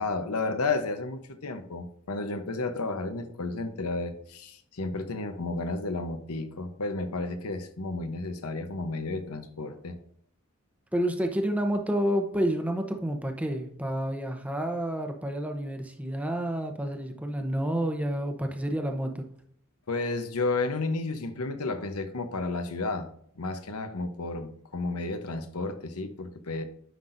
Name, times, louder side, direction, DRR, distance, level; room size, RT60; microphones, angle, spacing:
voice 1, 0.0-10.0 19.9-23.1 23.4-26.6, left 3 dB, 75° left, 0.9 m, -32 dB
voice 2, 10.9-19.2, right 1 dB, 5° right, 0.8 m, -29 dB
9.5 x 6.0 x 2.6 m
head